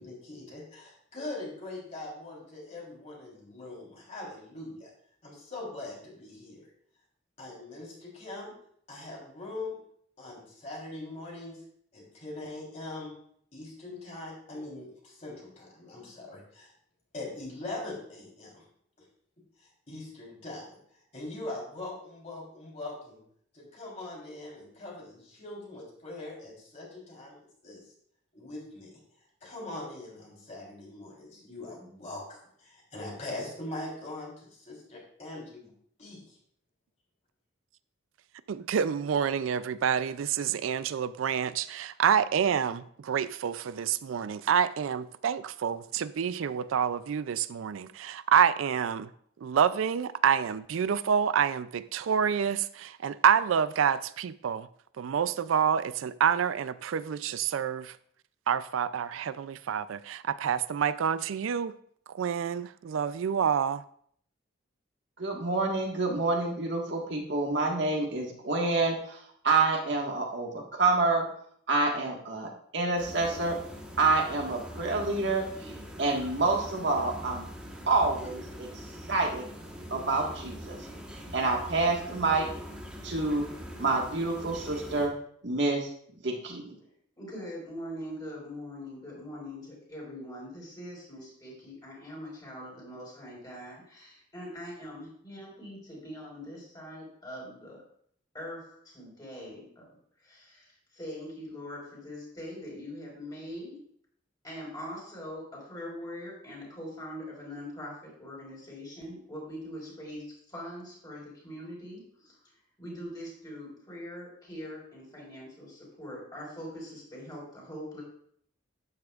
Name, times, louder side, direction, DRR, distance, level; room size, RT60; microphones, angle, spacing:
voice 1, 0.0-4.9 5.2-6.7 7.4-8.5 8.9-9.8 10.2-11.6 11.9-13.2 13.5-16.7 17.1-18.6 19.6-20.8 21.1-23.2 23.5-27.8 28.3-28.9 29.4-35.7 36.0-36.4, left 2 dB, 35° left, 3.6 m, -42 dB
voice 2, 38.5-49.1 49.4-54.7 55.0-58.0 58.5-61.7 62.1-63.8, right 7 dB, 90° right, 0.4 m, -27 dB
voice 3, 65.2-71.3 71.7-73.6 74.0-75.7 76.0-77.4 77.9-78.7 79.1-79.5 79.9-80.8 81.3-82.5 83.0-83.5 83.8-85.1 85.4-85.9 86.2-86.8, right 3 dB, 60° right, 1.6 m, -28 dB
sound 1, 73.0-85.1, equal, 5° right, 1.2 m, -43 dB
voice 4, 87.2-97.8 98.3-99.9 100.2-103.8 104.4-112.4 112.8-118.0, equal, 20° left, 4.6 m, -42 dB
12.0 x 9.6 x 2.4 m
head